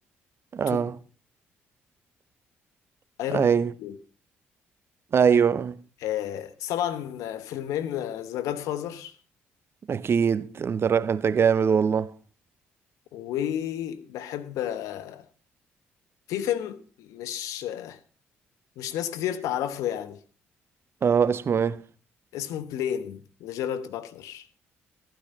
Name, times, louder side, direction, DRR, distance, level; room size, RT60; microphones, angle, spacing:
voice 1, 0.5-0.9 3.3-3.7 5.1-5.8 9.9-12.1 21.0-21.8, right 7 dB, 50° right, 0.8 m, -22 dB
voice 2, 3.2-3.5 3.8-4.0 6.0-9.2 13.1-15.2 16.3-18.0 18.8-20.2 22.3-24.5, left 10 dB, 75° left, 1.0 m, -31 dB
14.5 x 9.1 x 5.3 m
hypercardioid pair, 55°, 6 cm